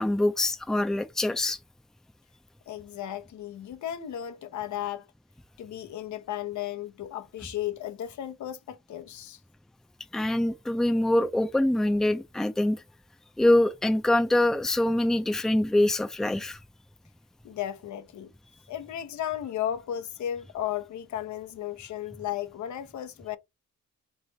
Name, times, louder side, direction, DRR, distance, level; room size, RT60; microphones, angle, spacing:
voice 1, 0.0-1.6 10.1-12.8 13.4-16.6, left 1 dB, ahead, 0.6 m, -24 dB
voice 2, 2.7-5.1 5.6-9.4 17.4-18.3 18.7-23.4, left 11 dB, 70° left, 0.9 m, -34 dB
3.4 x 3.3 x 4.0 m
cardioid pair, 90°, 30 cm